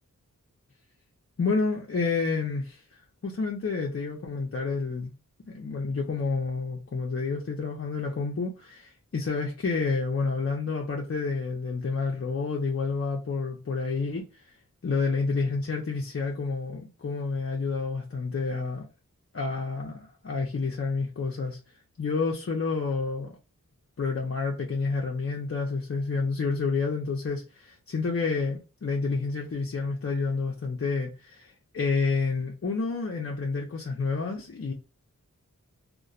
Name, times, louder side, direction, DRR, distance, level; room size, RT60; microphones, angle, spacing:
voice 1, 1.4-5.1 5.5-14.6 14.8-18.9 19.3-21.6 22.0-23.4 24.0-34.7, left 4 dB, 45° left, 0.5 m, -29 dB
2.9 x 2.1 x 2.4 m
wide cardioid pair, 55°, 33 cm